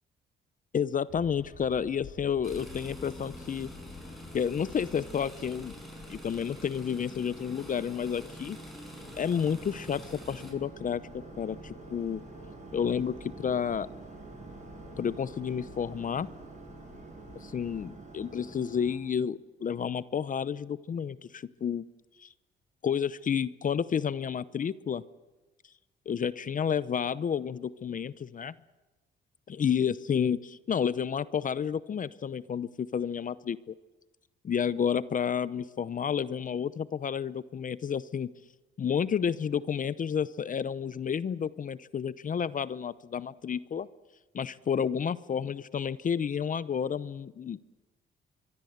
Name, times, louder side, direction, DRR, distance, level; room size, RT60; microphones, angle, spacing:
voice 1, 0.7-3.7 4.3-5.7 6.1-8.6 9.2-12.2 12.7-13.9 15.0-16.3 17.4-21.8 22.2-22.3 22.8-25.0 26.1-28.5 29.5-33.7 34.4-38.3 38.8-43.9 44.3-47.7, left 7 dB, 40° left, 16 dB, 0.7 m, -31 dB
sound 1, 1.1-17.9, left 5 dB, 60° left, 4.1 m, -52 dB
sound 2, 1.5-18.9, right 3 dB, 35° right, 7.6 m, -49 dB
sound 3, 2.4-10.5, equal, ahead, 7.3 m, -47 dB
25.0 x 23.0 x 8.1 m, 1.1 s
cardioid pair, 90°, 20 cm